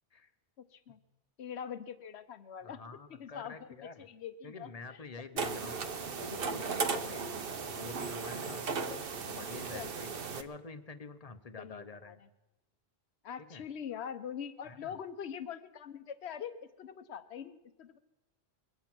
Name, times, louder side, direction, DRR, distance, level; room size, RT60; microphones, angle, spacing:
voice 1, 1.4-2.8 3.1-5.8 7.2-7.3 9.7-9.9 11.5-12.3 13.2-18.0, left 8 dB, 85° left, 12 dB, 1.1 m, -44 dB
voice 2, 2.6-4.1 4.4-5.8 6.2-7.3 7.7-12.3 13.5-13.6 14.7-15.0, left 4 dB, 40° left, 10 dB, 0.8 m, -48 dB
sound 1, 5.4-10.4, right 5 dB, 60° right, 1.0 m, -36 dB
22.5 x 9.0 x 6.0 m, 1.0 s
omnidirectional pair, 1.1 m